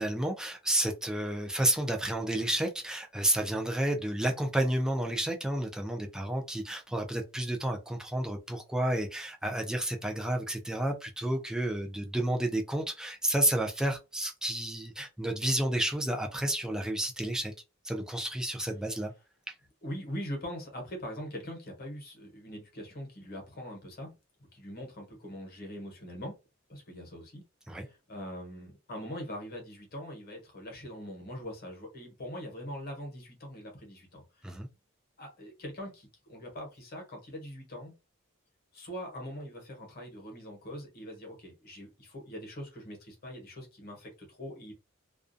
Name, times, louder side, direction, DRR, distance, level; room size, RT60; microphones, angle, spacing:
voice 1, 0.0-17.5 17.8-19.1 19.5-19.6 27.7-27.9 34.4-34.7, right 1 dB, 5° right, 0.4 m, -31 dB
voice 2, 19.8-24.1 24.5-26.3 26.7-27.4 27.8-34.5 35.2-37.9 38.7-44.7, equal, 50° left, 1.0 m, -42 dB
2.4 x 2.2 x 2.5 m
head